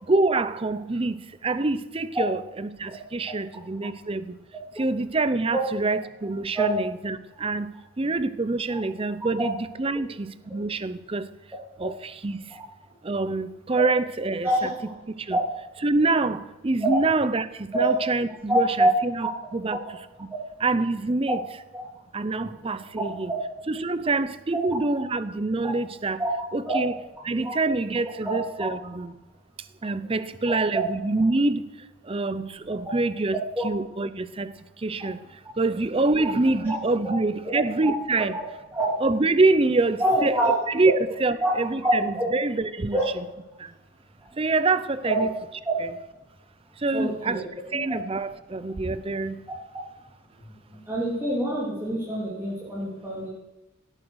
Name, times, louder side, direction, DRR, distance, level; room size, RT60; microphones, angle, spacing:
voice 1, 0.1-1.2 1.4-4.3 4.8-7.7 8.0-11.3 11.8-12.4 13.0-14.5 15.3-15.4 15.8-19.8 20.6-21.4 22.1-23.3 23.7-26.2 26.5-26.9 27.2-29.1 29.8-31.7 32.1-33.4 33.6-34.5 34.8-35.2 35.6-38.3 39.0-40.4 40.7-40.9 41.2-43.0 43.6-43.7 44.4-45.3 46.8-47.4 47.7-49.4, right 3 dB, 30° right, 14 dB, 0.6 m, -25 dB
voice 2, 18.5-18.9 21.7-21.8 23.0-23.4 26.2-26.3 26.7-26.8 27.4-27.6 28.2-28.4 30.5-30.8 33.6-33.7 36.6-36.7 37.0-37.2 37.4-37.9 38.7-38.9 40.0-40.6 41.4-41.5 41.8-42.3 42.9-43.0 45.1-45.2 45.6-45.7 46.9-47.4 47.7-48.0 50.7-53.3, right 1 dB, 10° right, -7 dB, 3.2 m, -25 dB
17.0 x 8.9 x 6.4 m, 0.98 s
head